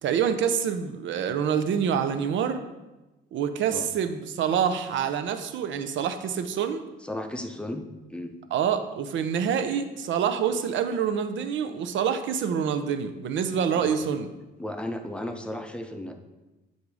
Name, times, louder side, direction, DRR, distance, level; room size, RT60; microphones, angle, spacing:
voice 1, 0.0-2.6 3.3-6.8 8.5-14.3, right 7 dB, 70° right, 9 dB, 0.6 m, -26 dB
voice 2, 7.0-8.4 13.8-14.0 14.6-16.2, left 1 dB, 5° left, 6 dB, 0.6 m, -35 dB
7.9 x 2.7 x 4.8 m, 1.1 s
cardioid pair, 90°, 20 cm